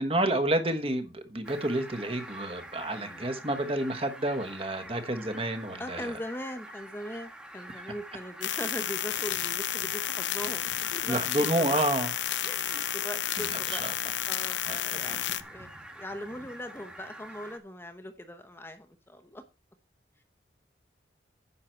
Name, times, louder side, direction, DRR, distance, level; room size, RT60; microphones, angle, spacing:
voice 1, 0.0-6.0 11.1-12.1 13.7-13.9 14.7-14.8, right 1 dB, 30° right, 9 dB, 1.2 m, -29 dB
Fowl, 1.4-17.6, right 1 dB, 5° right, 1.3 m, -46 dB
voice 2, 5.7-11.8 12.4-13.8 14.3-15.7 15.9-19.4, equal, 10° left, 6 dB, 0.8 m, -40 dB
sound 1, 8.4-15.4, left 11 dB, 75° left, 0.7 m, -32 dB
9.9 x 7.5 x 4.4 m, 0.30 s
head